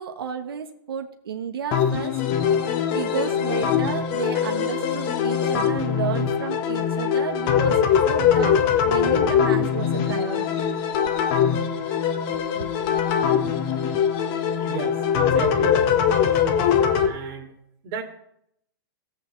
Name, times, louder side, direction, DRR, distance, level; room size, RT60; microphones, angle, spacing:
voice 1, 0.0-2.5 2.9-10.7 12.3-12.7, right 7 dB, 80° right, 4 dB, 1.2 m, -32 dB
sound 1, 1.7-17.1, left 8 dB, 40° left, 1.3 m, -22 dB
voice 2, 14.6-16.0 17.0-17.5 17.8-18.0, right 6 dB, 40° right, 0 dB, 2.4 m, -33 dB
18.5 x 7.8 x 3.2 m, 0.76 s
hypercardioid pair, 130°, 12 cm